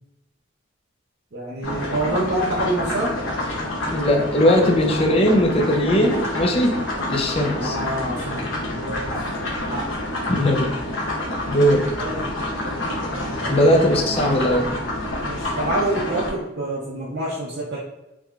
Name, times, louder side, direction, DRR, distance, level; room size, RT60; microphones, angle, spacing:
voice 1, 1.3-3.2 7.5-9.2 9.7-10.0 11.8-12.3 13.1-14.6 15.2-17.8, right 1 dB, 50° right, -6 dB, 0.6 m, -28 dB
sound 1, 1.6-16.3, left 1 dB, 70° left, 1.0 m, -28 dB
voice 2, 3.9-6.8 7.1-7.8 10.3-10.7 11.5-11.9 13.5-14.7, equal, 30° left, 1 dB, 0.5 m, -19 dB
3.6 x 3.1 x 2.3 m, 0.94 s
head